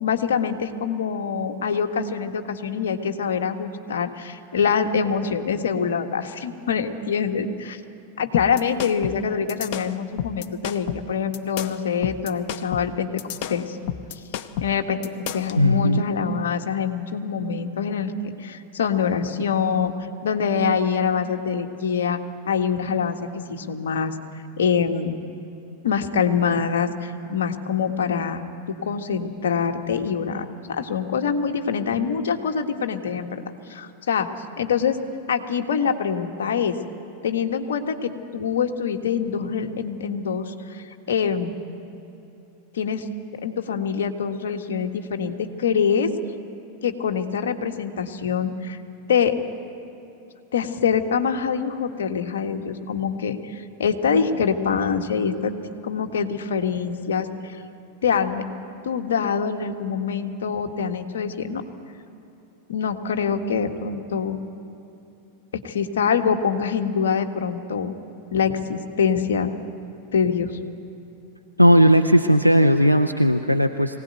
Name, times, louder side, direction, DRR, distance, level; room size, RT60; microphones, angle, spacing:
voice 1, 0.0-7.8 8.2-13.2 13.5-13.8 14.6-15.0 15.3-18.1 18.4-19.9 20.2-22.2 22.5-23.2 23.5-24.1 24.6-25.2 25.8-33.4 33.7-34.3 34.6-35.0 35.3-36.7 37.2-41.6 42.7-43.1 43.4-46.1 46.8-48.8 49.1-49.4 50.5-55.5 55.8-57.6 58.0-58.4 58.8-61.6 62.7-64.4 65.5-68.0 68.3-69.5 70.1-70.5, left 6 dB, 60° left, 5 dB, 1.6 m, -24 dB
sound 1, 8.3-15.6, left 10 dB, 45° left, 0.9 m, -31 dB
voice 2, 15.6-16.1 71.6-74.0, equal, 90° left, 7 dB, 0.7 m, -17 dB
23.5 x 17.5 x 9.3 m, 2.9 s
figure-of-eight pair, 90°, 0 cm